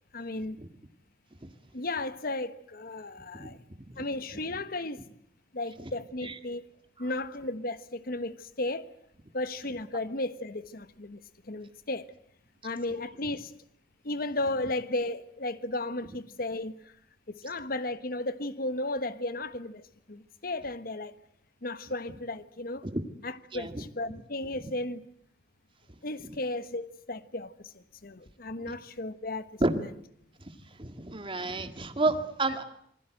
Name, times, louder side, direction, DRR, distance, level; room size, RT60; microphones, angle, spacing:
voice 1, 0.1-0.6 1.7-3.6 4.0-5.0 5.5-6.6 7.0-8.9 9.3-11.2 11.4-12.1 12.6-13.5 14.0-16.9 17.3-21.1 21.6-22.8 23.2-25.0 26.0-29.6, left 2 dB, 55° left, 1.3 m, -34 dB
voice 2, 23.5-23.8 26.2-26.4 28.6-28.8 29.6-29.8 30.4-32.6, right 2 dB, 30° right, 2.0 m, -31 dB
27.5 x 20.5 x 7.8 m
head